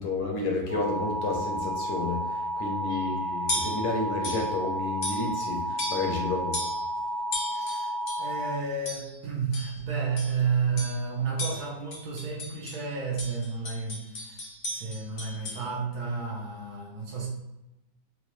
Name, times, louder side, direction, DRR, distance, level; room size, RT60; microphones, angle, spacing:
voice 1, 0.0-6.6, left 3 dB, 70° left, 0 dB, 1.3 m, -31 dB
sound 1, 0.7-8.5, right 1 dB, 40° right, 0.4 m, -32 dB
sound 2, 2.9-3.1 3.5-3.9 4.2-4.5 5.0-5.5 5.8-6.2 6.5-6.8 7.3-8.3 8.9-9.2 9.5-9.8 10.2-10.4 10.8-11.0 11.4-12.8 13.2-15.6, left 1 dB, 55° left, 0.7 m, -36 dB
voice 2, 7.5-17.3, right 5 dB, 65° right, -3 dB, 1.2 m, -31 dB
3.9 x 2.4 x 3.0 m, 0.97 s
omnidirectional pair, 1.9 m